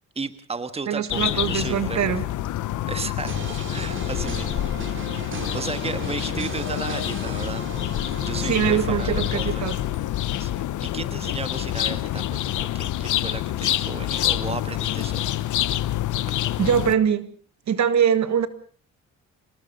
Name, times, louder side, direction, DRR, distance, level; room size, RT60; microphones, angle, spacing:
voice 1, 0.1-2.1 2.9-7.6 8.2-9.9 10.4-15.3, right 4 dB, 20° right, 12 dB, 1.5 m, -34 dB
voice 2, 0.9-2.2 8.4-9.7 16.6-17.3 17.7-18.5, right 8 dB, 65° right, 13 dB, 1.8 m, -22 dB
sound 1, 1.1-16.9, left 14 dB, 80° left, 1.0 m, -27 dB
sound 2, 3.3-10.2, right 3 dB, 40° right, 4.7 m, -36 dB
26.5 x 19.5 x 5.4 m, 0.42 s
cardioid pair, 105°, 30 cm